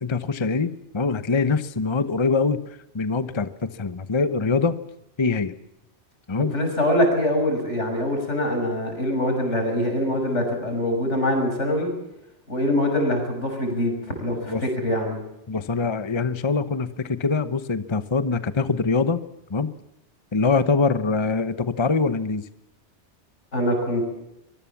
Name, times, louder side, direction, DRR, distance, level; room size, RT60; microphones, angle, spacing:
voice 1, 0.0-4.8 5.2-5.5 6.3-6.5 14.5-14.6 15.5-19.2 19.5-19.7 20.3-22.4, left 4 dB, 25° left, 12 dB, 0.9 m, -23 dB
voice 2, 6.5-11.9 12.5-15.2 23.5-24.1, left 1 dB, 85° left, 4 dB, 6.8 m, -24 dB
24.0 x 22.0 x 7.3 m, 0.87 s
omnidirectional pair, 1.2 m